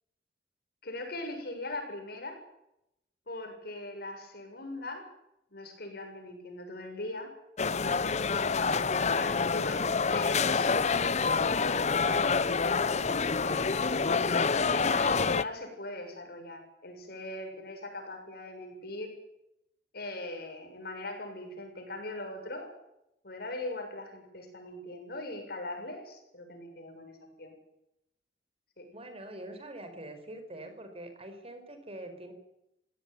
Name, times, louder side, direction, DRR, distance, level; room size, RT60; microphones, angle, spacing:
voice 1, 0.8-2.4 3.3-5.0 5.5-7.3 8.4-11.2 11.6-14.0 14.7-19.1 19.9-22.7 23.2-27.5 28.8-28.9, left 2 dB, 60° left, 5 dB, 7.3 m, -40 dB
sound 1, 7.6-15.4, left 5 dB, 40° left, 0.8 m, -27 dB
voice 2, 28.9-32.3, right 1 dB, 35° right, 7 dB, 4.8 m, -44 dB
22.5 x 17.0 x 9.7 m, 0.82 s
head